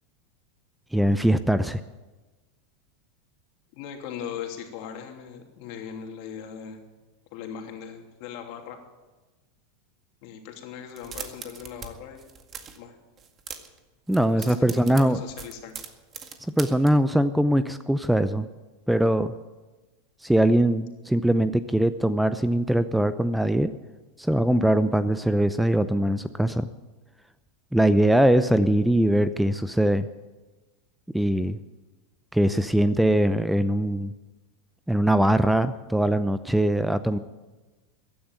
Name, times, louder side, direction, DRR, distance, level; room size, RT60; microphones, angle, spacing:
voice 1, 0.9-1.8 14.1-15.2 16.6-18.5 18.9-19.3 20.2-23.7 24.2-26.7 27.7-30.1 31.1-31.6 32.3-34.1 34.9-37.2, right 1 dB, 5° right, 13 dB, 0.7 m, -22 dB
voice 2, 3.7-6.8 7.3-8.8 10.2-12.3 12.7-13.0 14.2-15.7, left 8 dB, 55° left, 3 dB, 2.9 m, -39 dB
sound 1, 10.9-11.9 12.2-12.8 13.2-13.8 14.1-16.9, right 6 dB, 30° right, 1.9 m, -40 dB
15.0 x 10.5 x 9.0 m, 1.2 s
hypercardioid pair, 95°, 0 cm